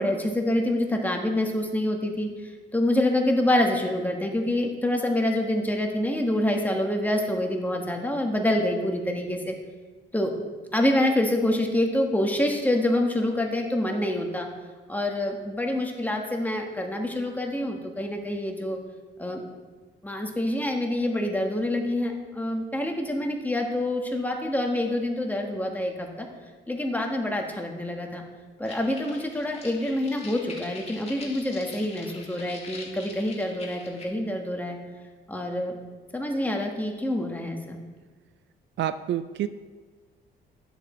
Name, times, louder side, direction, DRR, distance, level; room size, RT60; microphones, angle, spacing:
voice 1, 0.0-2.3 2.7-9.5 10.1-10.3 10.7-14.5 14.9-18.8 19.2-19.4 20.0-26.3 26.7-28.2 28.6-34.8 35.3-35.7 36.1-37.8, left 1 dB, 10° left, 2 dB, 1.5 m, -26 dB
sound 1, 28.6-34.1, left 3 dB, 30° left, 2.1 m, -44 dB
voice 2, 38.8-39.5, right 11 dB, 65° right, 12 dB, 0.4 m, -28 dB
10.5 x 6.5 x 4.3 m, 1.4 s
cardioid pair, 90°, 20 cm